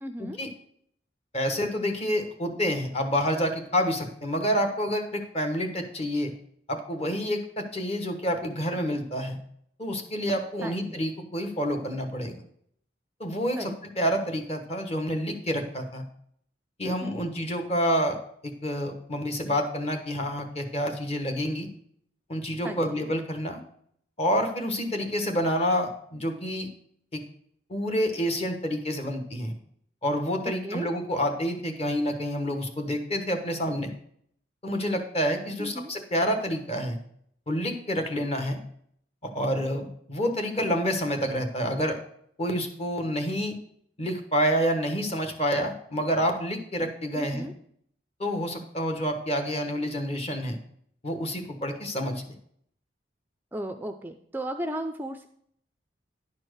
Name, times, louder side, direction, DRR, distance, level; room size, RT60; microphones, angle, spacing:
voice 1, 0.0-0.4 10.6-11.0 13.6-13.7 16.8-17.2 22.6-22.8 30.6-30.9 35.6-35.9 47.2-47.5 53.5-55.3, right 1 dB, 10° right, 7 dB, 0.4 m, -35 dB
voice 2, 1.3-6.3 6.7-9.4 9.8-12.4 13.2-16.0 16.8-21.7 22.3-23.6 24.2-26.7 27.1-27.2 27.7-29.5 30.0-33.9 34.6-37.0 37.5-38.6 39.2-42.0 42.4-43.6 44.0-47.5 48.2-50.6 51.0-52.2, equal, 35° left, 5 dB, 1.2 m, -28 dB
11.0 x 4.5 x 6.4 m, 0.67 s
head